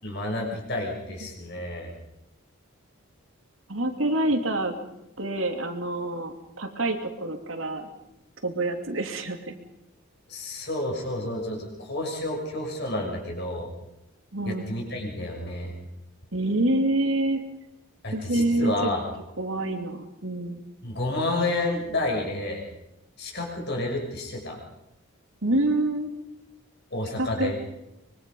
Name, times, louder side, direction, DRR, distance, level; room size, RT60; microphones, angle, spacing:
voice 1, 0.0-1.9 10.3-13.7 14.4-15.7 18.0-19.0 20.8-22.6 23.2-24.6 26.9-27.6, left 2 dB, 50° left, 0 dB, 6.4 m, -30 dB
voice 2, 3.7-4.7 5.2-7.9 8.4-9.5 14.3-14.7 16.3-17.4 18.1-18.9 19.4-20.6 25.4-26.1 27.2-27.5, right 1 dB, 70° right, 5 dB, 2.8 m, -26 dB
24.5 x 23.5 x 5.5 m, 0.90 s
head